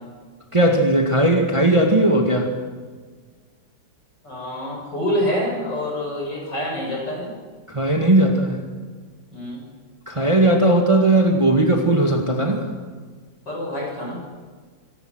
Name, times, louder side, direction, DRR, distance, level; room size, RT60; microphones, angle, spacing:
voice 1, 0.5-2.5 7.7-8.7 10.1-12.7, right 1 dB, 15° right, 2 dB, 2.1 m, -17 dB
voice 2, 4.2-7.3 9.3-9.6 13.5-14.2, left 1 dB, 60° left, -2 dB, 8.6 m, -26 dB
26.0 x 18.5 x 6.3 m, 1.5 s
omnidirectional pair, 2.1 m